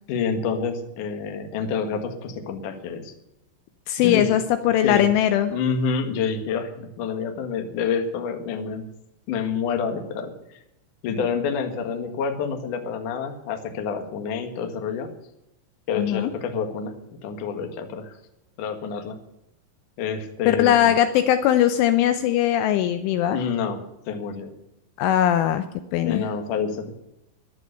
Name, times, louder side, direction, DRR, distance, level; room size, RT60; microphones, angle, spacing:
voice 1, 0.1-3.1 4.0-4.3 4.8-5.0 5.5-8.9 9.3-10.3 11.0-15.1 15.9-16.9 17.2-18.1 18.6-19.2 20.0-20.9 23.3-23.8 24.1-24.5 26.0-26.9, left 6 dB, 55° left, 5 dB, 2.4 m, -28 dB
voice 2, 3.9-5.5 16.0-16.3 20.5-23.4 25.0-25.6 25.9-26.3, left 11 dB, 80° left, 10 dB, 3.0 m, -20 dB
14.5 x 11.0 x 6.7 m, 0.85 s
omnidirectional pair, 5.9 m